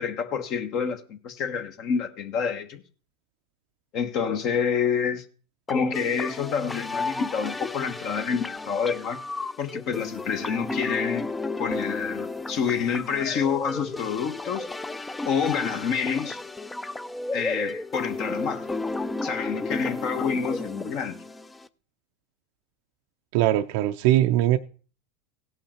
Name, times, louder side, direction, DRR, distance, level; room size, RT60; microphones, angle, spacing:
voice 1, 0.0-2.8 3.9-5.2 5.7-9.2 9.6-11.3 11.6-14.7 15.2-16.4 17.3-18.7 19.2-21.2, left 6 dB, 50° left, 1.1 m, -28 dB
sound 1, 5.7-21.7, left 2 dB, 10° left, 0.4 m, -33 dB
voice 2, 23.3-24.6, right 13 dB, 65° right, 0.5 m, -21 dB
16.5 x 5.6 x 4.3 m
supercardioid pair, 115°, 0 cm